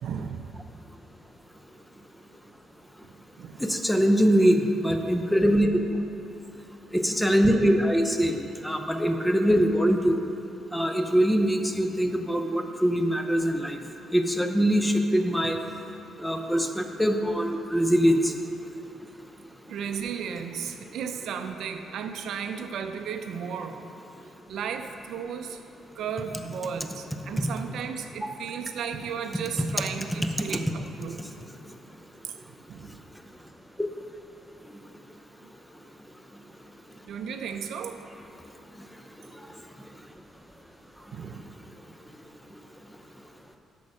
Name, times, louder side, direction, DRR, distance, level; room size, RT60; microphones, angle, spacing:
voice 1, 0.0-0.6 3.1-3.7 19.7-23.9 24.5-25.6 26.0-31.3 32.7-33.0 37.0-38.1 41.1-41.7, right 7 dB, 75° right, 7 dB, 0.5 m, -35 dB
voice 2, 3.6-5.7 6.9-8.4 8.6-10.2 10.7-13.8 14.1-15.6 16.2-18.3 27.4-27.5, equal, 5° left, 5 dB, 0.7 m, -23 dB
8.5 x 6.2 x 4.8 m, 3.0 s
cardioid pair, 90°, 0 cm